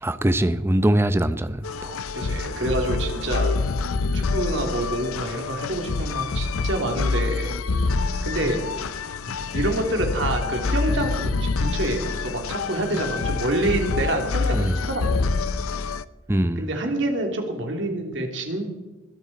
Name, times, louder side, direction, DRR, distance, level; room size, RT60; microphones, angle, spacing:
voice 1, 0.0-2.0 14.5-14.8 16.3-16.7, right 1 dB, 10° right, 0.6 m, -22 dB
sound 1, 1.6-16.0, left 4 dB, 85° left, 0.6 m, -26 dB
voice 2, 2.1-3.5 4.1-7.5 8.2-8.9 9.2-15.3 16.6-18.7, right 1 dB, 60° right, 2.9 m, -27 dB
21.0 x 12.5 x 4.2 m
head